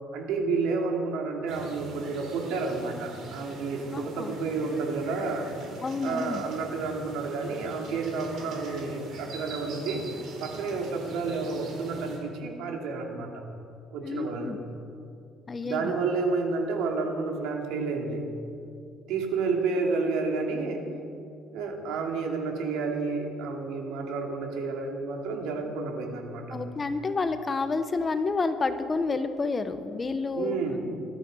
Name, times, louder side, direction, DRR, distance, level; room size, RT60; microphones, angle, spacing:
voice 1, 0.1-5.5 6.0-10.0 10.4-13.4 13.9-14.6 15.6-18.3 19.1-20.9 21.5-26.6 30.3-30.8, right 4 dB, 80° right, 2 dB, 2.6 m, -30 dB
sound 1, 1.5-12.2, right 2 dB, 55° right, 3.9 m, -43 dB
voice 2, 3.9-4.3 5.8-6.4 14.0-14.6 15.5-16.0 26.5-30.6, left 3 dB, 20° left, 10 dB, 0.8 m, -29 dB
19.5 x 13.0 x 5.4 m, 2.5 s
cardioid pair, 140°, 0 cm